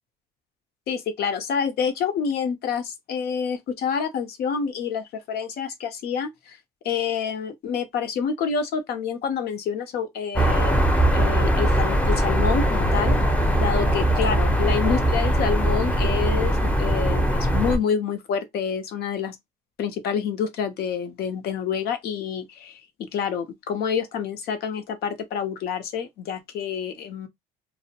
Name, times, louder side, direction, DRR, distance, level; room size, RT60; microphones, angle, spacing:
voice 1, 0.9-6.6 6.8-13.2 13.6-19.4 19.8-27.3, left 7 dB, 70° left, 0.7 m, -28 dB
sound 1, 10.4-17.8, right 1 dB, 10° left, 0.6 m, -21 dB
2.5 x 2.0 x 2.8 m
cardioid pair, 110°, 17 cm